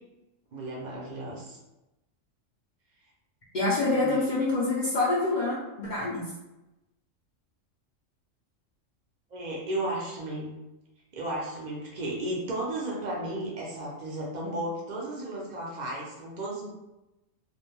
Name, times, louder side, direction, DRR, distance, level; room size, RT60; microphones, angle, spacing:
voice 1, 0.5-1.6 3.8-4.2 9.3-10.5 11.1-16.7, right 1 dB, 50° right, -4 dB, 0.5 m, -34 dB
voice 2, 3.5-6.3, left 2 dB, 55° left, -8 dB, 0.5 m, -26 dB
2.4 x 2.1 x 3.0 m, 0.97 s
omnidirectional pair, 1.4 m